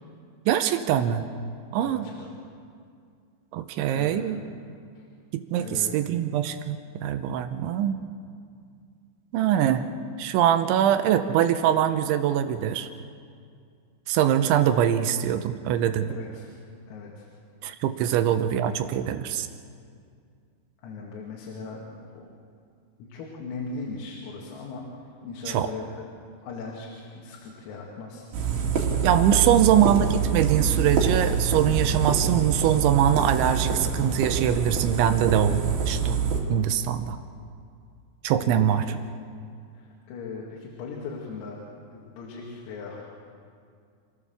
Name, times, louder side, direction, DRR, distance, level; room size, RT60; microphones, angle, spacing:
voice 1, 0.5-1.3 1.7-2.1 3.5-4.4 5.3-8.0 9.3-9.9 10.2-12.9 14.1-16.1 17.6-19.5 25.5-25.7 29.0-36.2 36.5-37.2 38.2-38.8, right 10 dB, 80° right, 9 dB, 2.9 m, -23 dB
voice 2, 1.8-2.3 3.9-4.4 5.0-5.1 5.6-6.0 16.1-16.5 16.9-17.3 20.8-21.8 22.1-22.3 23.0-24.8 25.2-26.0 26.4-28.3 29.3-29.7 38.4-39.0 39.7-41.6 41.9-43.0, left 4 dB, 85° left, -2 dB, 4.9 m, -38 dB
sound 1, 28.3-36.4, right 5 dB, 50° right, 3.7 m, -26 dB
28.0 x 16.0 x 7.2 m, 2.3 s
omnidirectional pair, 5.9 m